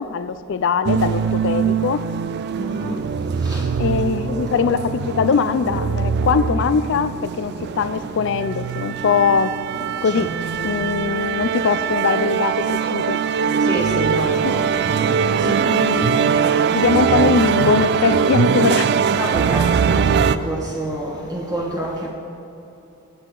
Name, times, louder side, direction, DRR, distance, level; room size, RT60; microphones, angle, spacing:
voice 1, 0.0-2.0 3.8-9.5 10.0-10.3 10.6-13.2 14.4-14.5 15.4-16.3 16.7-18.9, left 6 dB, 60° left, 12 dB, 0.4 m, -21 dB
sound 1, 0.9-20.4, right 6 dB, 50° right, 0.3 m, -21 dB
voice 2, 2.5-3.0 3.4-3.6 10.0-10.7 13.6-14.6 15.0-16.3 19.1-22.1, right 1 dB, 20° right, -4 dB, 1.2 m, -28 dB
18.0 x 6.5 x 3.8 m, 3.0 s
head